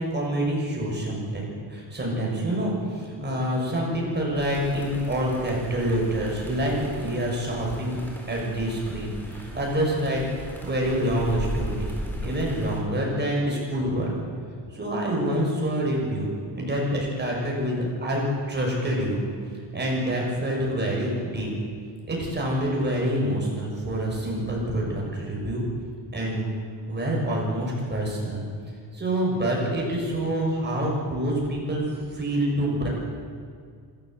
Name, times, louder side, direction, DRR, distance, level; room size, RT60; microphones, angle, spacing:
voice 1, 0.0-8.0 8.3-11.9 12.2-14.1 14.7-16.3 16.5-19.2 19.7-21.5 22.1-25.6 26.1-26.5 26.9-28.4 28.9-31.8 32.1-32.9, right 1 dB, 25° right, -2 dB, 6.5 m, -26 dB
sound 1, 4.3-12.8, equal, 5° left, 4.2 m, -37 dB
26.0 x 13.5 x 7.9 m, 2.2 s
wide cardioid pair, 155°, 43 cm